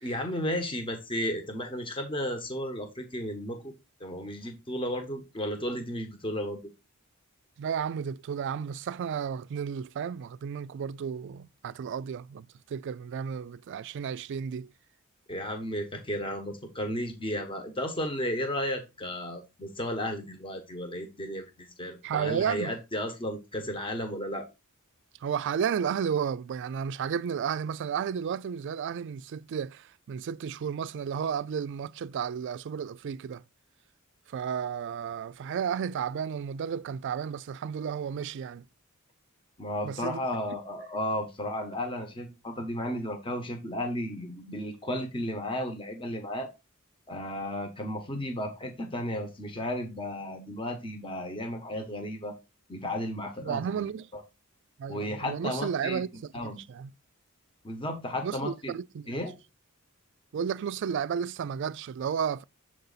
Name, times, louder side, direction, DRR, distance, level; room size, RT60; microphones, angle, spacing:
voice 1, 0.0-3.7 4.0-6.6 15.3-24.5 39.6-46.5 47.1-52.4 52.7-54.2 54.9-56.0 56.3-56.6 57.6-58.7 59.1-59.3, left 1 dB, 25° left, 1.1 m, -34 dB
voice 2, 7.6-14.7 22.0-22.7 25.2-33.4 34.3-38.7 39.8-40.3 53.4-54.1 54.8-56.9 58.2-59.2 60.3-62.4, right 7 dB, 55° right, 0.3 m, -33 dB
7.5 x 4.0 x 4.0 m
head